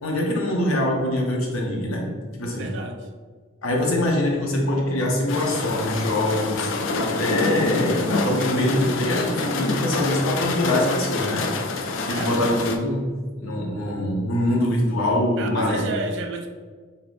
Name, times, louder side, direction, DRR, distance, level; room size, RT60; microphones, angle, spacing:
voice 1, 0.0-2.1 2.4-2.7 3.6-11.5 12.0-13.1 13.4-15.8, left 1 dB, 80° left, -1 dB, 0.7 m, -24 dB
voice 2, 2.6-3.1 12.1-12.4 15.4-16.5, right 3 dB, 60° right, 4 dB, 0.3 m, -31 dB
sound 1, 5.3-12.8, left 3 dB, 65° left, 0.3 m, -27 dB
3.3 x 2.6 x 2.5 m, 1.5 s
head